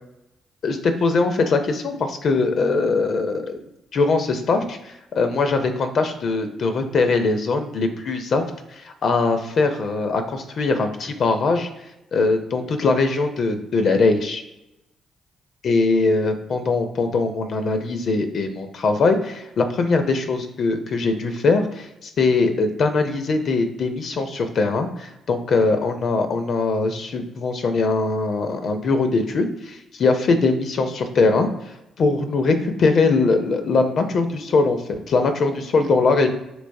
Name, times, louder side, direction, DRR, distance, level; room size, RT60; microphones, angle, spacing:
voice 1, 0.6-3.6 3.9-8.4 8.7-11.7 12.1-14.4 15.6-31.5 32.0-36.3, left 3 dB, 60° left, 7 dB, 0.4 m, -21 dB
3.2 x 2.9 x 2.6 m, 0.90 s
hypercardioid pair, 45°, 0 cm